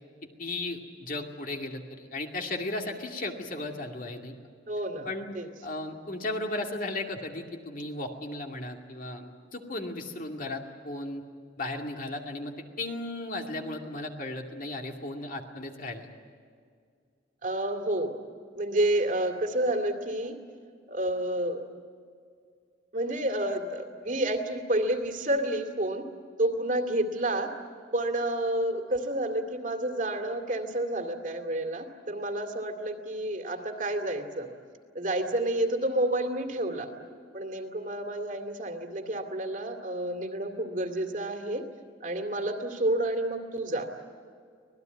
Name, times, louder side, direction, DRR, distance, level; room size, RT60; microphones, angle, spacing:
voice 1, 0.4-4.4 5.0-5.3 5.6-11.2 11.6-16.1, left 2 dB, 45° left, 3 dB, 2.4 m, -35 dB
voice 2, 4.7-5.1 5.3-5.5 17.4-18.2 18.5-20.4 20.9-21.6 22.9-26.1 26.4-27.5 27.9-34.5 34.9-36.9 37.3-41.6 42.0-43.9, right 1 dB, 45° right, 5 dB, 2.4 m, -29 dB
25.5 x 19.0 x 9.4 m, 2.2 s
head